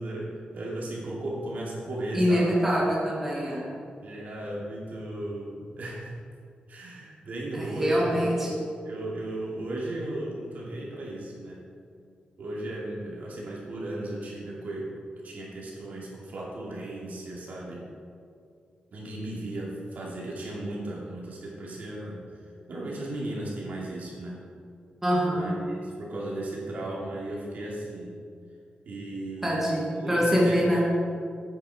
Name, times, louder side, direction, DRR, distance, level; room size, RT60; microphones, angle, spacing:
voice 1, 0.0-2.6 4.0-6.1 6.7-11.6 12.4-14.9 15.2-17.8 18.9-22.4 22.7-24.4 25.3-28.1 28.8-30.8, right 1 dB, 60° right, -4 dB, 2.6 m, -36 dB
voice 2, 2.1-3.7 7.5-8.5 25.0-25.5 29.4-30.8, equal, 10° right, -5 dB, 1.7 m, -24 dB
9.4 x 9.4 x 4.8 m, 2.3 s
wide cardioid pair, 170°, 3 cm